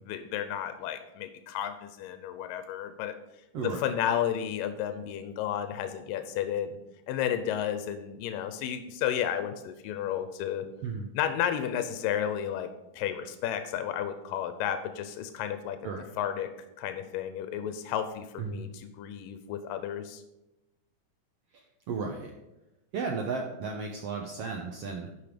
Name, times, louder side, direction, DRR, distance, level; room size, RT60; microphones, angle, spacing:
voice 1, 0.0-3.2 3.6-6.8 7.1-10.7 11.1-12.7 12.9-15.8 16.2-16.5 16.8-20.2, left 10 dB, 85° left, 9 dB, 2.3 m, -32 dB
voice 2, 21.9-22.3 22.9-25.1, right 4 dB, 85° right, 2 dB, 1.3 m, -34 dB
11.0 x 5.6 x 5.0 m, 0.95 s
omnidirectional pair, 3.9 m